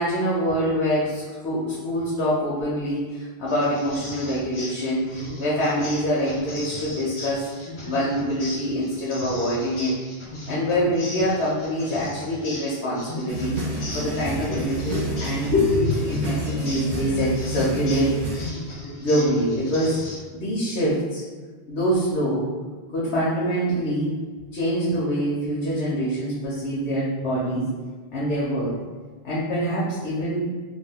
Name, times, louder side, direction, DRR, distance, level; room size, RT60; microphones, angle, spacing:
voice 1, 0.0-10.1 10.5-13.6 13.9-18.2 19.0-20.0 20.3-21.2 21.7-22.5 22.9-24.2 24.5-27.7 28.1-28.7 29.2-30.5, equal, 85° left, -6 dB, 1.0 m, -25 dB
sound 1, 3.5-20.2, left 1 dB, 45° left, 0.4 m, -37 dB
sound 2, 13.3-18.5, right 1 dB, 75° right, 1.0 m, -29 dB
2.6 x 2.4 x 3.5 m, 1.4 s
omnidirectional pair, 1.1 m